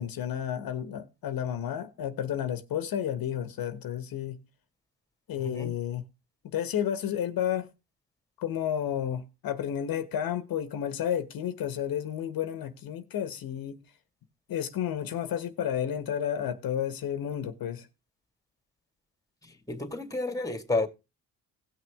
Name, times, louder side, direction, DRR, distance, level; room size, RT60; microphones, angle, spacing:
voice 1, 0.0-4.4 5.3-6.0 6.4-7.7 8.4-13.8 14.5-17.9, left 9 dB, 65° left, 1.3 m, -31 dB
voice 2, 5.4-5.7 19.4-20.9, left 2 dB, 10° left, 2.1 m, -31 dB
17.5 x 6.2 x 3.5 m
cardioid pair, 85°, 37 cm